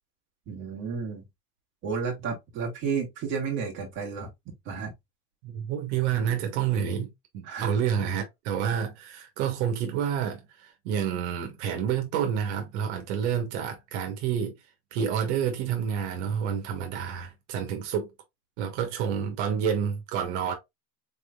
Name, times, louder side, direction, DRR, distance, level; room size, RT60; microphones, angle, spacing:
voice 1, 0.5-1.2 1.8-4.3 4.6-4.9 7.4-7.7, right 5 dB, 35° right, 1.7 m, -32 dB
voice 2, 5.4-14.6 14.9-18.1 18.6-20.5, right 8 dB, 75° right, 1.1 m, -29 dB
4.1 x 3.6 x 2.3 m
cardioid pair, 165°, 35 cm